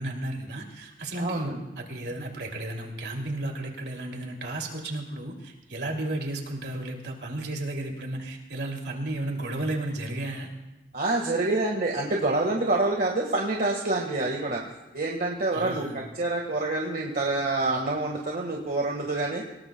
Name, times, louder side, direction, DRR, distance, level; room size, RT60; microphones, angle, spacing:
voice 1, 0.0-10.5 15.5-16.0, right 1 dB, 70° right, 1 dB, 2.8 m, -33 dB
voice 2, 1.2-1.6 10.9-14.6 14.9-19.4, right 2 dB, 55° right, -1 dB, 1.7 m, -27 dB
26.5 x 18.5 x 2.3 m, 1.0 s
head